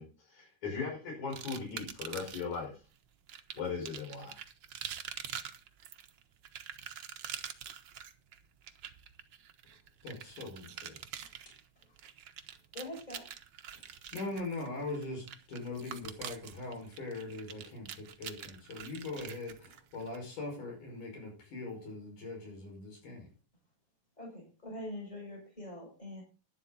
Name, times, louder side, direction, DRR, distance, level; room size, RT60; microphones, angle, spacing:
voice 1, 0.0-2.7 3.5-4.3, left 5 dB, 65° left, 0 dB, 6.1 m, -38 dB
sound 1, 1.3-2.6 3.3-20.2, right 9 dB, 90° right, 1.0 m, -45 dB
voice 2, 10.0-11.0 13.7-13.8 14.1-23.3, left 2 dB, 80° left, 1 dB, 7.1 m, -41 dB
voice 3, 12.7-13.2 24.2-26.2, left 1 dB, 10° left, 0 dB, 6.7 m, -43 dB
11.5 x 11.0 x 4.1 m, 0.32 s
omnidirectional pair, 3.6 m